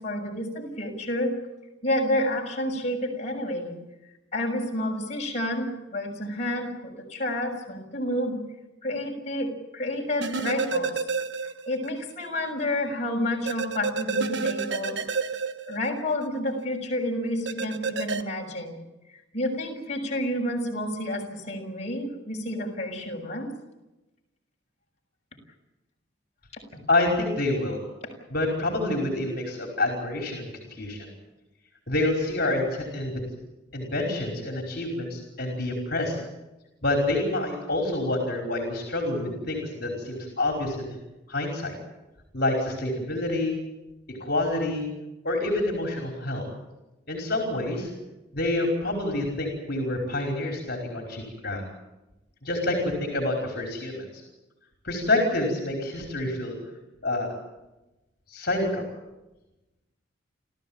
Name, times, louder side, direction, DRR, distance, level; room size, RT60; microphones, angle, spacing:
voice 1, 0.0-1.3 1.8-3.8 4.3-8.4 8.8-11.1 11.4-15.0 15.7-18.8 19.3-23.5 26.5-26.6, left 1 dB, 35° left, 0 dB, 6.3 m, -29 dB
sound 1, 10.2-11.9 12.2-12.3 13.4-16.3 17.4-18.2, right 4 dB, 65° right, 1.4 m, -29 dB
voice 2, 26.9-27.8 28.3-30.5 30.8-31.1 31.9-33.2 33.7-36.2 36.8-41.0 41.3-41.8 42.3-43.6 44.1-44.9 45.2-46.4 47.1-47.9 48.3-51.6 52.4-54.2 54.8-56.6 57.0-57.4 58.3-58.8, left 2 dB, 50° left, 2 dB, 5.1 m, -27 dB
29.0 x 15.0 x 9.0 m, 1.0 s
head